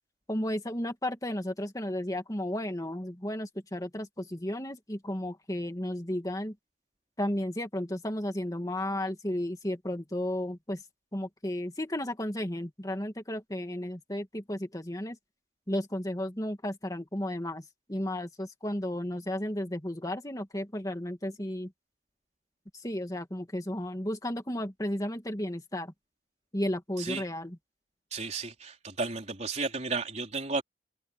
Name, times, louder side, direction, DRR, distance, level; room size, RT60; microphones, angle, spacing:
voice 1, 0.3-6.5 7.2-10.8 11.1-15.2 15.7-17.6 17.9-21.7 22.7-25.9 26.5-27.6, left 1 dB, 20° left, 2.3 m, -33 dB
voice 2, 27.0-27.3 28.1-30.6, right 4 dB, 40° right, 3.9 m, -33 dB
head